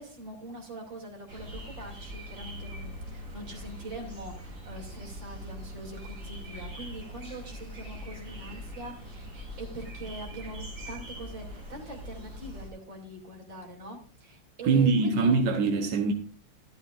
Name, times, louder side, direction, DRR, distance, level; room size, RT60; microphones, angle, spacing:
voice 1, 0.0-15.4, right 2 dB, 90° right, 3.5 m, -43 dB
sound 1, 1.3-12.7, equal, 45° right, 3.6 m, -42 dB
voice 2, 14.6-16.1, right 4 dB, 70° right, 1.7 m, -23 dB
13.0 x 12.5 x 2.5 m
omnidirectional pair, 2.0 m